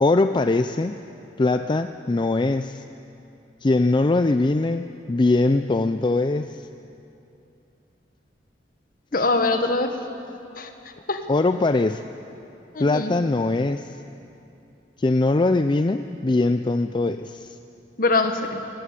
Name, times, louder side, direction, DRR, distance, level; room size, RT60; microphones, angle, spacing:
voice 1, 0.0-1.0 1.4-2.8 3.6-6.6 9.1-9.3 11.3-12.0 12.8-14.0 15.0-17.6, left 2 dB, 25° left, 9 dB, 0.4 m, -21 dB
voice 2, 9.1-10.0 10.6-10.7 11.1-11.2 12.7-13.1 18.0-18.6, left 3 dB, 55° left, 6 dB, 1.5 m, -23 dB
20.5 x 16.0 x 8.5 m, 2.8 s
head